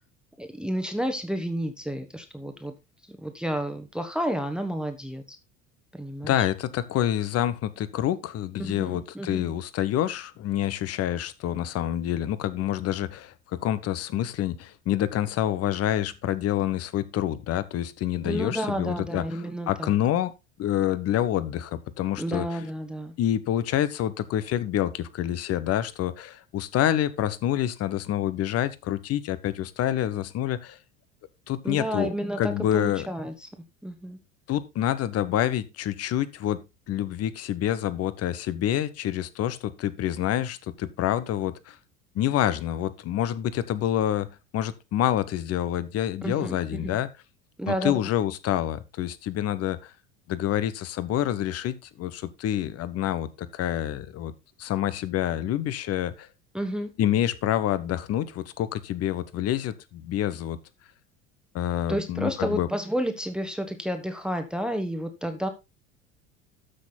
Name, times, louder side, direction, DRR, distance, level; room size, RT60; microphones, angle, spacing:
voice 1, 0.4-2.7 3.1-5.4 5.9-6.4 8.7-9.5 18.2-19.9 22.2-23.1 31.6-33.5 33.8-34.2 46.2-47.0 47.6-48.0 56.5-56.9 61.9-65.5, equal, ahead, 1.4 m, -31 dB
voice 2, 6.2-13.3 13.6-19.2 19.7-20.3 20.6-22.4 23.2-30.8 31.5-33.1 34.5-36.6 36.9-41.8 42.1-44.3 44.5-47.1 47.7-49.9 50.3-54.3 54.6-56.3 57.0-60.6 61.5-62.7, left 11 dB, 40° left, 1.1 m, -27 dB
13.0 x 6.2 x 4.1 m
figure-of-eight pair, 70°, 38 cm